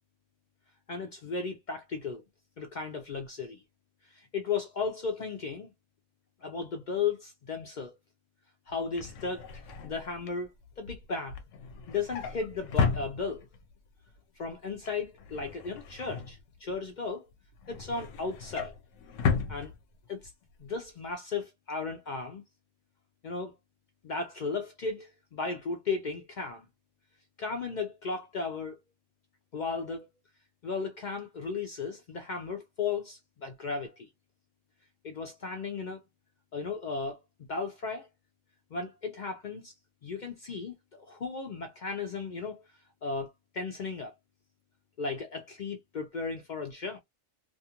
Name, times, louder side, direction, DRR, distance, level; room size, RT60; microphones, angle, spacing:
voice 1, 0.9-2.2 2.6-3.6 4.1-5.7 6.4-7.9 8.7-10.5 10.8-11.4 11.9-13.5 14.4-17.2 17.7-18.7 19.5-19.7 20.1-20.2 20.6-22.4 23.2-23.5 24.0-26.7 27.4-28.8 29.5-30.1 30.6-34.1 35.0-36.0 36.5-37.2 37.5-38.1 38.7-39.7 40.0-42.6 43.0-44.1 45.0-47.0, left 4 dB, 65° left, 0.4 m, -35 dB
Drawer open or close, 8.7-13.7 14.1-14.4 14.7-16.9 17.3-20.3 20.7-20.9 21.1-21.2, left 5 dB, 90° left, 1.0 m, -35 dB
2.4 x 2.4 x 2.8 m
omnidirectional pair, 1.3 m